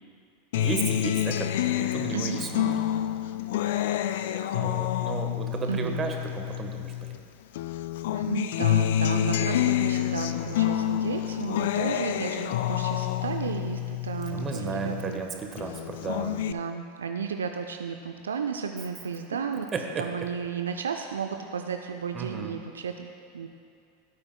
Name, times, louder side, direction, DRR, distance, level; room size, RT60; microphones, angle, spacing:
Acoustic guitar, 0.5-7.2 7.6-15.2 15.6-16.5, left 11 dB, 60° left, 0.3 m, -28 dB
voice 1, 0.6-2.6 4.5-7.2 14.3-16.4 19.7-20.0 22.1-22.6, right 5 dB, 25° right, 3 dB, 1.2 m, -34 dB
voice 2, 2.1-2.7 5.7-6.0 8.1-15.2 16.5-19.7 20.0-23.5, right 6 dB, 75° right, 5 dB, 0.4 m, -33 dB
17.0 x 8.6 x 2.2 m, 2.4 s
figure-of-eight pair, 85°, 0 cm